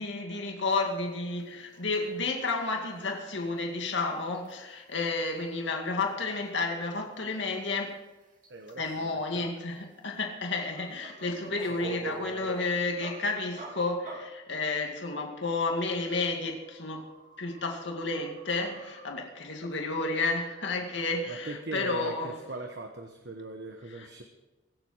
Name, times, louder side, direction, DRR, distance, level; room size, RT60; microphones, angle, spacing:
voice 1, 0.0-8.0 8.8-17.1 17.4-22.4 23.9-24.1, left 3 dB, 70° left, 2.2 m, -31 dB
sound 1, 1.2-1.4 1.7-2.1 2.5-2.6 3.0-3.1 3.4-5.3 5.7-5.8 6.1-7.9 8.2-9.0 9.5-13.1 13.6-13.7 14.0-14.2 15.3-19.1, right 2 dB, 40° right, 2.6 m, -50 dB
voice 2, 8.5-9.5 11.5-11.6 11.8-12.5 21.3-24.2, right 2 dB, 60° right, 1.2 m, -39 dB
23.0 x 7.7 x 6.4 m
head